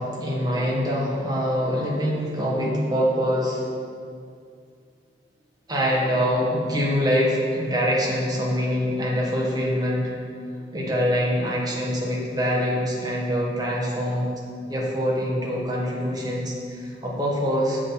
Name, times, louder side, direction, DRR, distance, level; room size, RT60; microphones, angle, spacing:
voice 1, 0.0-3.7 5.7-10.1 10.7-14.3 14.7-17.8, equal, 20° right, -4 dB, 1.4 m, -24 dB
7.5 x 6.1 x 4.1 m, 2.3 s
head